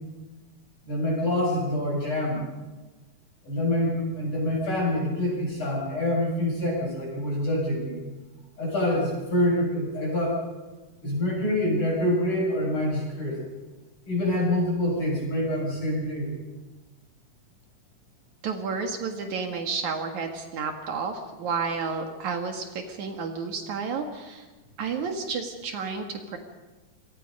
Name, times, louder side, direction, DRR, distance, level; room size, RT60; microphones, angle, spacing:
voice 1, 0.9-2.4 3.4-8.0 8.6-10.4 11.0-13.4 14.1-16.3, left 1 dB, 40° left, -1 dB, 7.7 m, -26 dB
voice 2, 18.4-24.5 24.8-26.4, right 5 dB, 65° right, 4 dB, 2.9 m, -31 dB
27.0 x 24.0 x 5.4 m, 1.2 s
omnidirectional pair, 3.8 m